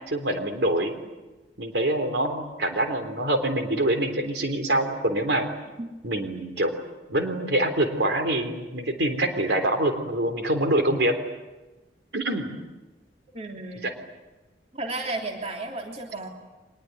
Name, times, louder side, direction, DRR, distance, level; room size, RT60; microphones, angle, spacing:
voice 1, 0.1-0.9 1.6-5.5 6.0-6.7 7.1-11.1 12.1-12.5 13.8-13.9, right 1 dB, 65° right, 6 dB, 3.6 m, -25 dB
voice 2, 13.3-13.9 14.7-16.3, right 2 dB, 35° right, 1 dB, 3.2 m, -33 dB
25.0 x 21.0 x 9.4 m, 1.1 s
head